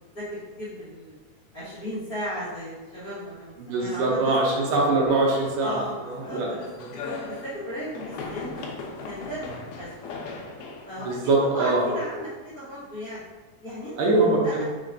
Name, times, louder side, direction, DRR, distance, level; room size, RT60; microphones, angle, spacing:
voice 1, 0.1-1.1 1.5-4.3 4.6-4.7 5.6-6.6 7.0-9.9 10.8-13.2 13.6-13.9 14.4-14.6, equal, 60° left, -13 dB, 0.9 m, -36 dB
voice 2, 3.6-6.5 6.8-6.9 11.0-11.9 14.0-14.6, right 2 dB, 75° right, -3 dB, 2.4 m, -23 dB
sound 1, 5.1-12.1, left 4 dB, 75° left, 2.1 m, -39 dB
6.1 x 3.3 x 2.6 m, 1.2 s
omnidirectional pair, 4.0 m